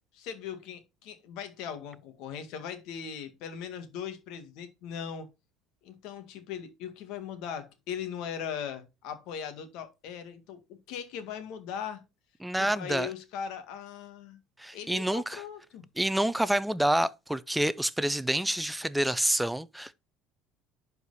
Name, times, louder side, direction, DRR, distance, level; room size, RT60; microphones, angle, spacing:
voice 1, 0.1-5.3 5.8-12.0 12.5-14.4 14.7-15.9, left 8 dB, 65° left, 2.0 m, -39 dB
voice 2, 12.4-13.1 14.6-15.4 16.0-19.9, right 1 dB, 5° right, 0.5 m, -28 dB
11.0 x 4.7 x 4.1 m
cardioid pair, 150°, 0 cm